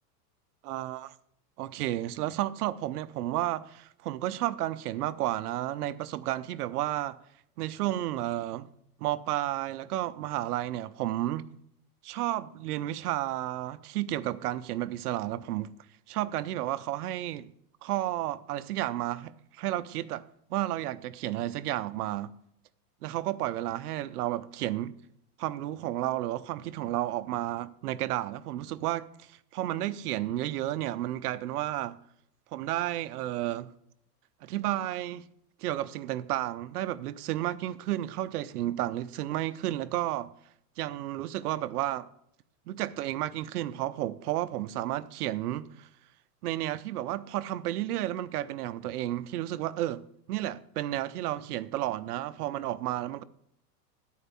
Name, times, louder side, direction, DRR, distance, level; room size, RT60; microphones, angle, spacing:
voice 1, 0.6-1.1 1.6-7.2 7.6-8.7 9.0-11.5 12.0-15.7 16.1-17.5 17.8-20.2 20.5-22.4 23.0-25.0 25.4-32.0 32.5-33.7 34.4-35.2 35.6-40.3 40.8-42.1 42.7-45.9 46.4-53.2, right 14 dB, 75° right, 0.7 m, -32 dB
11.0 x 4.7 x 7.0 m
supercardioid pair, 150°, 47 cm